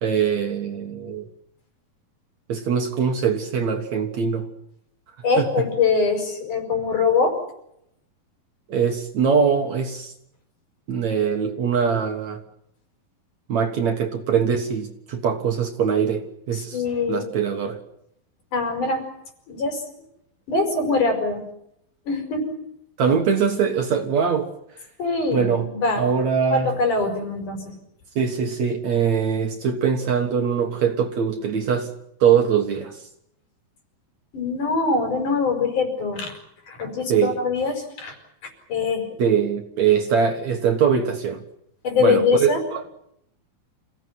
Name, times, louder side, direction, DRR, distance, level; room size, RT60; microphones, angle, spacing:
voice 1, 0.0-1.2 2.5-4.5 5.4-5.7 8.7-10.1 10.9-12.4 13.5-16.8 17.1-17.8 23.0-24.5 25.3-25.7 26.0-26.7 28.2-31.9 32.2-33.1 37.1-37.4 39.2-41.4 42.0-42.8, right 7 dB, 55° right, 5 dB, 2.5 m, -22 dB
voice 2, 5.2-7.4 16.5-17.2 18.5-19.0 19.5-19.8 20.5-21.4 22.1-22.6 25.0-26.1 26.4-27.7 34.3-36.4 36.7-38.1 38.7-39.1 41.8-42.6, left 4 dB, 55° left, 5 dB, 6.4 m, -23 dB
28.0 x 17.0 x 9.5 m, 0.77 s
omnidirectional pair, 4.3 m